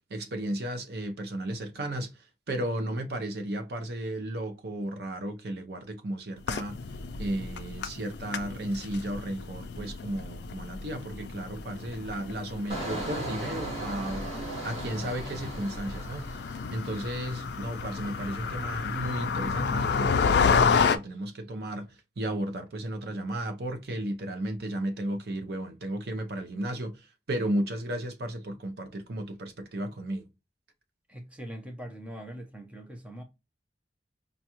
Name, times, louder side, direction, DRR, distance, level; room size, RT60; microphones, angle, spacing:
voice 1, 0.1-6.8 7.2-14.3 14.6-16.4 16.7-30.3, right 1 dB, 60° right, 0.6 m, -34 dB
sound 1, 6.4-21.0, left 5 dB, 65° left, 0.4 m, -30 dB
Engine, 12.7-17.4 17.7-18.1, right 1 dB, 35° right, 1.9 m, -38 dB
voice 2, 31.1-33.2, right 1 dB, 5° right, 0.6 m, -42 dB
5.2 x 2.3 x 2.9 m
head